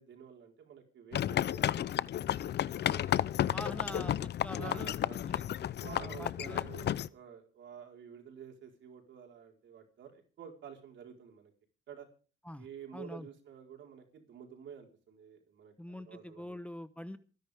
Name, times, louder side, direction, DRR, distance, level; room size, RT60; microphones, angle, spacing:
voice 1, 0.0-1.9 3.6-4.0 4.5-5.2 5.8-11.5 11.9-12.1 12.6-16.6, right 8 dB, 70° right, 2 dB, 4.3 m, -50 dB
sound 1, 1.1-7.1, left 11 dB, 60° left, 0.6 m, -32 dB
voice 2, 3.5-5.0 5.3-5.4 5.9-6.7 12.4-12.7 12.9-13.3 15.8-17.2, left 1 dB, 5° left, 12 dB, 1.0 m, -44 dB
26.0 x 10.5 x 3.5 m, 0.38 s
cardioid pair, 90°, 20 cm